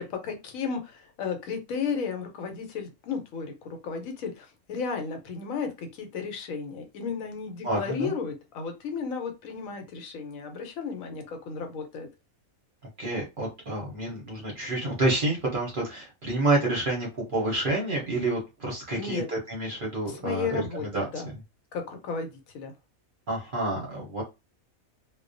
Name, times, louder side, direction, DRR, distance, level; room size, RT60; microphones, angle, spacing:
voice 1, 0.0-12.1 19.0-19.3 20.1-20.9 21.1-21.3 21.7-22.7, left 5 dB, 80° left, 5 dB, 1.0 m, -34 dB
voice 2, 7.6-8.1 13.0-21.1 23.3-24.2, right 2 dB, 50° right, -2 dB, 0.7 m, -28 dB
2.3 x 2.1 x 2.5 m, 0.25 s
omnidirectional pair, 1.4 m